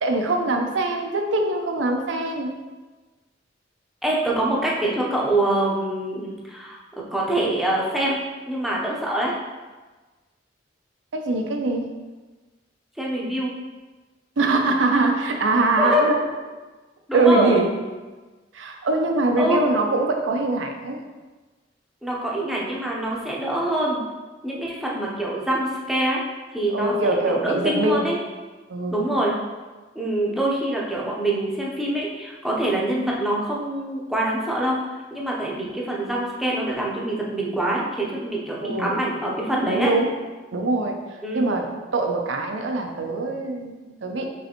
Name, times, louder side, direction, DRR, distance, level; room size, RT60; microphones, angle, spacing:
voice 1, 0.0-2.5 11.1-11.9 14.4-16.2 17.1-17.7 18.5-21.0 26.7-28.1 28.7-29.0 38.6-39.0 39.6-40.1 40.5-44.3, right 2 dB, 85° right, 3 dB, 0.5 m, -23 dB
voice 2, 4.0-6.8 7.1-9.3 13.0-13.5 15.8-16.1 17.1-17.5 19.4-19.6 22.0-24.0 24.4-26.2 26.5-28.2 28.9-29.3 29.9-34.8 35.1-39.9 41.2-41.6, right 1 dB, ahead, -4 dB, 0.6 m, -25 dB
5.3 x 3.2 x 2.9 m, 1.3 s
head